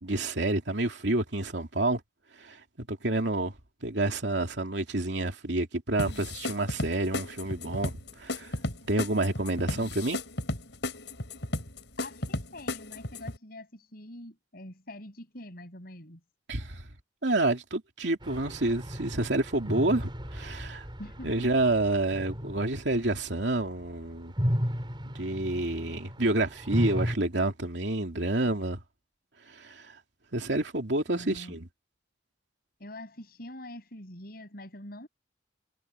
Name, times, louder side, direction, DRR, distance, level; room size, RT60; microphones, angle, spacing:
voice 1, 0.0-2.0 2.3-3.6 3.8-8.6 8.9-10.2 16.5-16.9 17.2-20.8 21.2-24.3 25.1-28.8 29.4-30.0 30.3-31.7, right 2 dB, 80° right, 2.7 m, -29 dB
sound 1, 6.0-13.4, left 1 dB, 80° left, 4.9 m, -34 dB
voice 2, 12.0-16.2 21.0-21.5 28.0-28.1 31.1-31.6 32.8-35.1, left 1 dB, 55° left, 7.0 m, -45 dB
sound 2, 18.2-23.8 24.2-27.1, equal, 25° right, 5.2 m, -34 dB
head